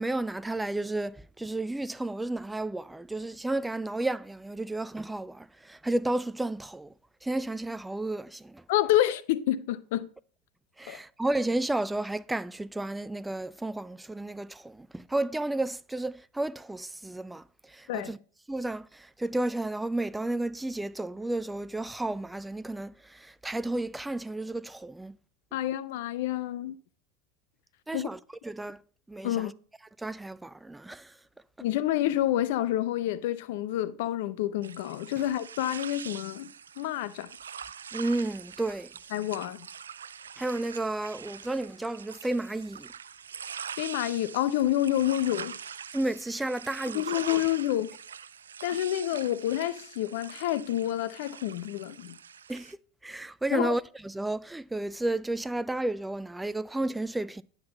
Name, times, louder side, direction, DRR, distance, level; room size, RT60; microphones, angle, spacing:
voice 1, 0.0-6.9 7.2-8.6 10.8-18.2 18.5-25.1 27.9-28.8 29.1-29.5 30.0-31.2 37.9-38.9 40.4-42.9 45.9-47.0 47.3-47.4 52.5-52.8 53.0-57.4, right 2 dB, 10° right, 0.3 m, -32 dB
voice 2, 8.7-10.1 10.9-11.0 17.9-18.1 25.5-26.8 27.9-28.1 29.2-29.5 31.6-37.3 39.1-39.7 43.8-45.6 46.9-47.9 48.6-52.2 53.5-53.8, left 13 dB, 70° left, 0.7 m, -28 dB
sound 1, 34.6-52.7, right 7 dB, 90° right, 0.4 m, -43 dB
9.7 x 5.8 x 5.3 m
hypercardioid pair, 90°, 0 cm